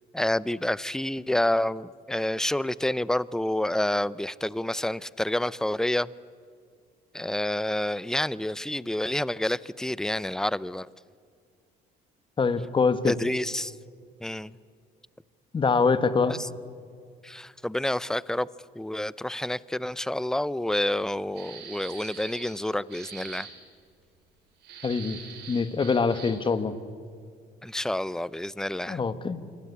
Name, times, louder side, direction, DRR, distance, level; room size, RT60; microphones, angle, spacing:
voice 1, 0.1-6.1 7.1-10.9 13.1-13.7 14.2-14.5 16.3-16.5 17.2-18.5 18.8-23.5 27.6-29.0, left 1 dB, 5° left, 20 dB, 0.6 m, -28 dB
voice 2, 12.4-13.1 15.5-16.3 24.8-25.2 25.5-26.7 28.9-29.4, left 4 dB, 30° left, 12 dB, 1.6 m, -24 dB
sound 1, 21.3-22.6 22.9-23.5 24.6-26.5, right 7 dB, 80° right, 6.5 m, -43 dB
27.5 x 22.5 x 8.5 m, 2.2 s
cardioid pair, 110°, 17 cm